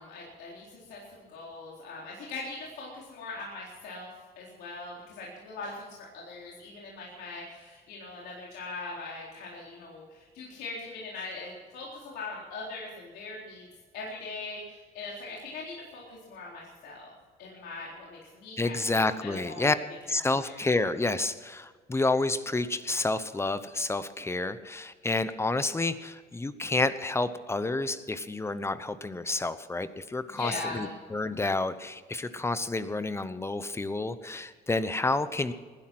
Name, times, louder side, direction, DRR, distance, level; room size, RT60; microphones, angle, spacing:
voice 1, 0.0-4.1 4.4-13.7 13.9-17.1 17.4-19.7 20.2-20.6 30.3-30.9, left 3 dB, 75° left, -4 dB, 4.0 m, -41 dB
voice 2, 18.6-19.8 20.1-35.5, left 2 dB, 15° left, 13 dB, 0.9 m, -29 dB
20.0 x 11.5 x 6.1 m, 1.5 s
cardioid pair, 110°, 17 cm